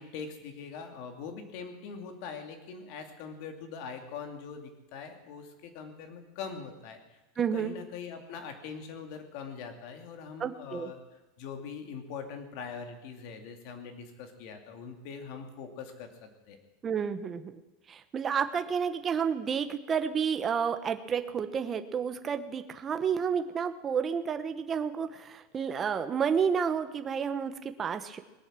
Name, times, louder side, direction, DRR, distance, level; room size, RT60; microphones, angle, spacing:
voice 1, 0.0-7.2 7.5-11.0 11.4-16.6, left 6 dB, 50° left, 6 dB, 2.7 m, -42 dB
voice 2, 7.4-7.7 10.4-10.9 16.8-17.6 17.9-28.2, right 7 dB, 20° right, 8 dB, 0.9 m, -30 dB
20.5 x 9.1 x 7.6 m, 1.1 s
supercardioid pair, 165°, 0 cm